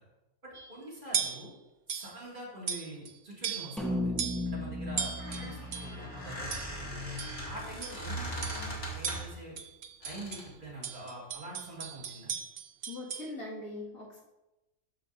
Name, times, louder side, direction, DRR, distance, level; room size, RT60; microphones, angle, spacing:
voice 1, 0.4-1.5 1.9-4.1 4.5-7.1 7.4-9.5 10.0-12.3, right 1 dB, 35° right, -6 dB, 2.2 m, -45 dB
sound 1, 0.5-0.7 1.1-1.5 1.9-2.2 2.7-3.1 3.4-3.8 4.2-4.5 5.0-6.0 6.5-6.8 7.2-7.4 7.8-8.1 8.4-8.7 9.0-10.5 10.8-13.3, right 7 dB, 70° right, 0.4 m, -37 dB
sound 2, 3.8-8.2, left 1 dB, ahead, 0.8 m, -37 dB
Squeak, 5.2-9.4 10.0-10.5, equal, 55° left, 2.1 m, -39 dB
voice 2, 12.9-14.2, left 2 dB, 80° left, -5 dB, 2.3 m, -41 dB
13.0 x 5.0 x 2.6 m, 1.0 s
omnidirectional pair, 1.4 m